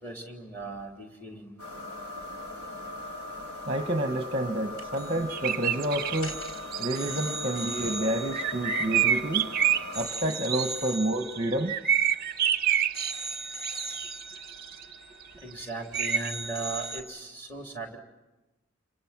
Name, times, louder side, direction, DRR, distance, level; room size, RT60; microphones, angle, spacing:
voice 1, 0.0-1.5 15.4-18.0, right 3 dB, 10° left, 1 dB, 3.5 m, -38 dB
sound 1, 1.6-10.1, left 2 dB, 90° left, 5.0 m, -39 dB
voice 2, 3.7-6.4 6.8-9.5 9.9-11.8, right 1 dB, 25° right, 6 dB, 1.0 m, -29 dB
sound 2, 4.8-5.2 5.5-5.7 6.1-9.5 9.9-12.5 12.9-15.6 15.9-17.0, right 2 dB, 65° left, 4.1 m, -39 dB
sound 3, 5.3-7.2 8.3-10.7 11.2-13.2 13.6-14.9 15.9-16.3, right 9 dB, 45° right, 0.7 m, -27 dB
29.0 x 26.5 x 6.0 m, 1.1 s
head